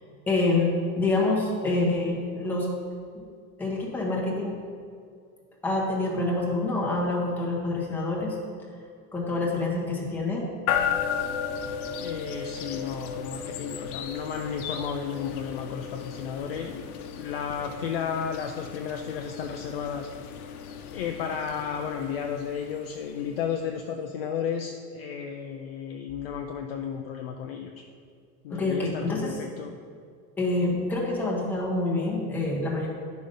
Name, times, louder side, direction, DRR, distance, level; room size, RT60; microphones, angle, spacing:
voice 1, 0.3-2.7 3.1-3.2 3.6-4.6 5.6-8.4 9.1-10.4 28.5-29.4 30.4-32.9, left 2 dB, 5° left, -3 dB, 0.9 m, -26 dB
sound 1, 10.7-23.7, left 7 dB, 70° left, 0.9 m, -35 dB
voice 2, 12.0-16.8 17.2-20.1 20.9-27.8 28.4-29.8, left 7 dB, 45° left, 3 dB, 0.4 m, -33 dB
10.5 x 5.2 x 5.4 m, 2.3 s
supercardioid pair, 180°, 45 cm